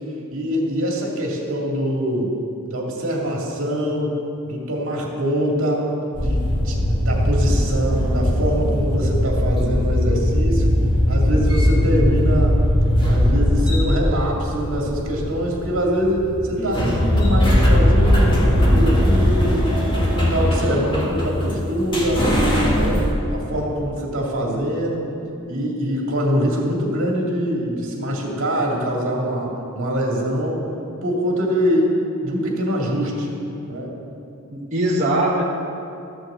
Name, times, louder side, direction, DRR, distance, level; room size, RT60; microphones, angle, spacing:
voice 1, 0.3-2.3 2.7-5.9 6.2-10.7 11.1-12.6 13.1-19.8 20.0-22.3 22.7-25.0 25.5-30.6 31.0-33.3 33.7-33.9, equal, 65° right, -2 dB, 2.2 m, -24 dB
sound 1, 6.1-23.1, equal, 20° left, 1.9 m, -19 dB
voice 2, 16.6-17.1 34.5-35.4, right 1 dB, 35° right, -6 dB, 1.4 m, -22 dB
13.0 x 6.4 x 7.6 m, 2.8 s
head